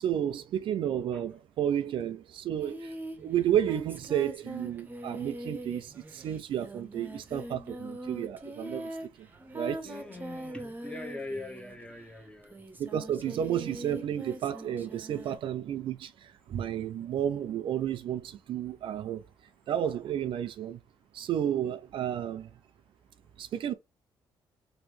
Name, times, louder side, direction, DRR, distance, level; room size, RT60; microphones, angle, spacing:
voice 1, 0.0-8.9 9.2-9.3 9.5-9.9 12.8-19.2 19.7-20.8 21.1-22.5 23.4-23.7, right 10 dB, 65° right, 0.4 m, -32 dB
Singing, 2.6-12.0 12.4-15.4, right 1 dB, 20° right, 0.8 m, -42 dB
voice 2, 9.8-12.5 13.2-13.4, left 2 dB, 10° left, 1.0 m, -42 dB
3.0 x 2.6 x 3.1 m
cardioid pair, 80°, 9 cm